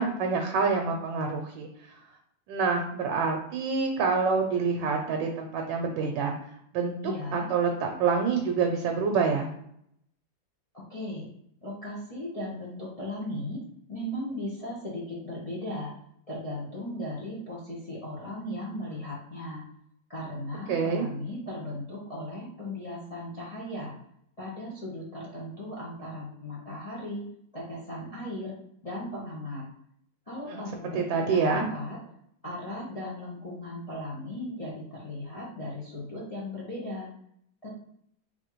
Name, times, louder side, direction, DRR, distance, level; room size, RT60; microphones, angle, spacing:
voice 1, 0.0-1.7 2.5-6.3 6.7-9.5 20.7-21.1 30.5-30.6 30.9-31.7, right 5 dB, 80° right, 3 dB, 1.3 m, -27 dB
voice 2, 7.0-7.5 10.7-11.3 11.6-13.6 13.9-15.9 16.3-19.6 20.1-23.9 24.4-27.2 27.5-28.5 28.8-29.6 30.3-32.0 32.4-37.1 37.6-37.7, left 1 dB, 60° left, -6 dB, 0.3 m, -37 dB
4.1 x 2.9 x 2.9 m, 0.70 s
omnidirectional pair, 2.1 m